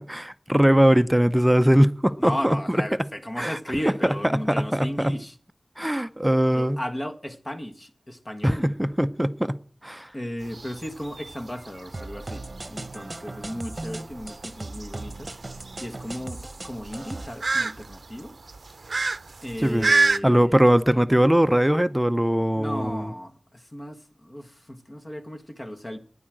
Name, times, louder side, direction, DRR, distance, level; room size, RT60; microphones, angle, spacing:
voice 1, 0.0-2.8 3.4-3.6 4.0-5.1 5.8-6.8 8.4-9.6 9.8-10.1 19.6-19.9 20.2-23.1, equal, 10° right, 0.6 m, -21 dB
voice 2, 2.2-5.4 6.5-8.7 10.1-15.3 15.8-18.3 19.4-20.7 22.6-26.0, equal, 35° left, 1.5 m, -35 dB
sound 1, 10.4-20.2, right 3 dB, 80° right, 0.5 m, -29 dB
sound 2, 11.9-17.3, right 2 dB, 40° right, 1.0 m, -38 dB
10.0 x 8.5 x 7.6 m
wide cardioid pair, 65°, 0 cm